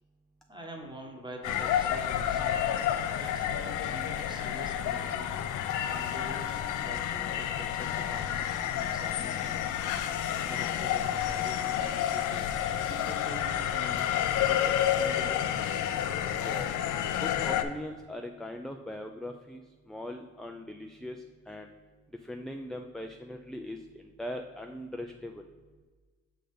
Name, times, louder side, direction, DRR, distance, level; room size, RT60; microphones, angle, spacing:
voice 1, 0.5-2.6 3.1-5.3 5.8-9.8 10.5-14.0 14.4-15.6, right 1 dB, 15° right, 1 dB, 1.3 m, -45 dB
sound 1, 1.4-17.6, left 10 dB, 80° left, 0.5 m, -30 dB
voice 2, 17.2-19.6 19.9-21.2 21.5-21.7 22.3-25.4, left 1 dB, ahead, 3 dB, 0.3 m, -40 dB
6.5 x 4.0 x 4.9 m, 1.4 s
cardioid pair, 90°, 30 cm